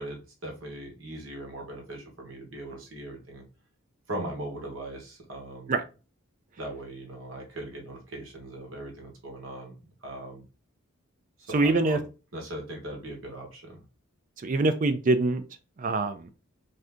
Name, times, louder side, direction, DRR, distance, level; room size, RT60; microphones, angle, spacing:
voice 1, 0.0-3.4 4.1-5.8 6.6-9.7 10.0-10.4 11.5-12.0 12.3-13.8, right 1 dB, 65° right, 1 dB, 1.1 m, -39 dB
voice 2, 11.5-12.0 14.4-15.4 15.8-16.3, right 2 dB, 35° right, 10 dB, 0.3 m, -24 dB
2.7 x 2.5 x 3.3 m, 0.32 s
head